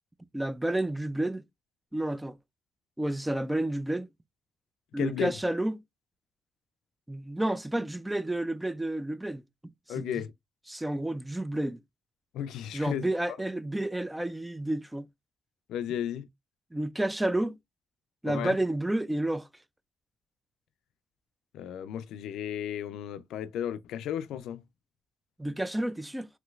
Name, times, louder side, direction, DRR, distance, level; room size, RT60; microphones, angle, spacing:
voice 1, 0.3-1.4 1.9-2.4 3.0-4.1 4.9-5.8 7.1-9.4 10.0-10.2 10.7-11.8 12.7-15.1 16.7-17.6 18.2-19.5 25.4-26.3, right 1 dB, 10° right, 0.3 m, -30 dB
voice 2, 5.0-5.3 9.9-10.3 12.3-13.1 15.7-16.3 18.3-18.6 21.5-24.6, left 10 dB, 85° left, 0.4 m, -34 dB
3.1 x 2.9 x 2.3 m
cardioid pair, 90°, 0 cm